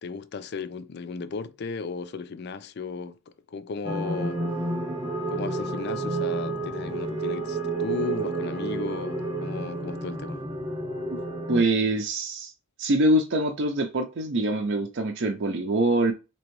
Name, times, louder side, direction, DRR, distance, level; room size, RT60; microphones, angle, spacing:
voice 1, 0.0-4.4 5.3-10.4, left 5 dB, 50° left, 0.4 m, -35 dB
sound 1, 3.8-11.6, right 2 dB, 20° right, 0.8 m, -30 dB
voice 2, 11.5-12.5 12.8-16.1, right 1 dB, 55° right, 0.5 m, -24 dB
4.3 x 2.9 x 3.0 m
head